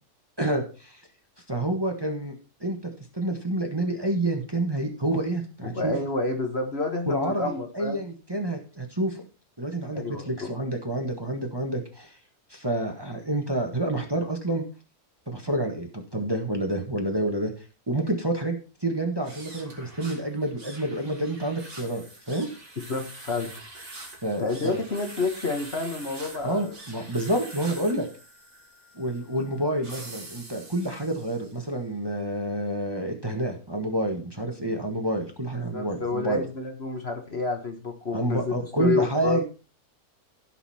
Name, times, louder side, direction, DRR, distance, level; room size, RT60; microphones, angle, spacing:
voice 1, 0.4-1.0 1.5-2.3 2.6-5.9 7.1-9.2 9.6-12.2 12.5-14.6 15.3-17.5 17.9-22.5 24.2-24.8 26.4-28.1 28.9-36.4 38.1-39.4, right 1 dB, 15° right, 3 dB, 1.6 m, -28 dB
voice 2, 5.7-8.0 9.9-10.5 22.9-23.5 24.4-26.8 35.7-39.4, left 3 dB, 45° left, 4 dB, 1.7 m, -29 dB
sound 1, 19.2-31.7, right 2 dB, 50° right, 3.2 m, -45 dB
16.0 x 5.7 x 4.3 m, 0.34 s
omnidirectional pair, 1.6 m